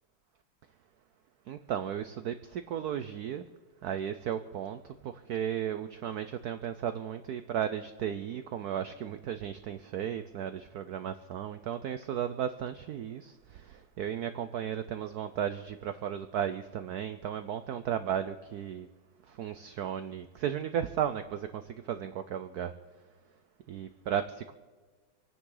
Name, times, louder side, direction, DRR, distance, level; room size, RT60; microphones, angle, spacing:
voice 1, 1.5-3.4 3.8-18.9 19.3-22.8 23.7-24.5, right 9 dB, 65° right, 10 dB, 1.0 m, -35 dB
27.5 x 9.9 x 3.9 m, 1.4 s
omnidirectional pair, 2.2 m